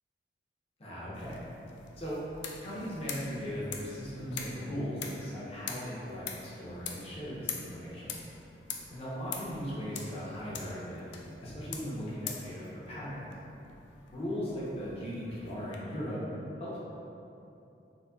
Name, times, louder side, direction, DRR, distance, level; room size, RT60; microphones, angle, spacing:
voice 1, 0.8-1.4 2.0-2.2 2.6-8.1 8.9-13.3 14.1-16.2 16.6-16.8, equal, 35° left, -9 dB, 0.8 m, -38 dB
sound 1, 1.1-15.8, left 6 dB, 80° left, 0.3 m, -45 dB
4.0 x 2.9 x 2.3 m, 2.8 s
head